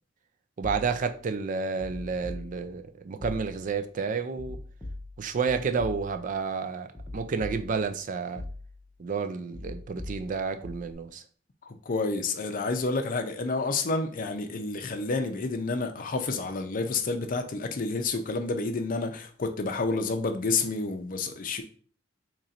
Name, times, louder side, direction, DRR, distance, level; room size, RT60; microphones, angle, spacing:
sound 1, 0.6-1.2 1.8-2.9 3.2-3.8 4.4-6.4 6.9-8.0 8.4-9.0 9.5-10.9, left 2 dB, 5° left, 0.8 m, -41 dB
voice 1, 0.6-4.6 5.2-8.4 9.0-11.2, right 5 dB, 40° right, 0.3 m, -30 dB
voice 2, 11.7-21.6, left 3 dB, 45° left, 0.5 m, -29 dB
3.0 x 2.5 x 4.1 m
head